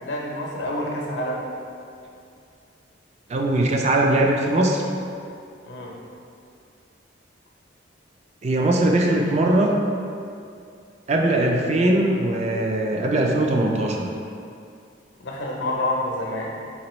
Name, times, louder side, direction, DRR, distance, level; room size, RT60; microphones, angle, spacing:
voice 1, 0.0-1.5 5.7-6.0 15.2-16.6, left 1 dB, 80° left, -1 dB, 0.6 m, -28 dB
voice 2, 3.3-4.8 8.4-9.8 11.1-14.1, right 1 dB, 35° right, 1 dB, 0.4 m, -20 dB
4.0 x 3.3 x 3.0 m, 2.4 s
head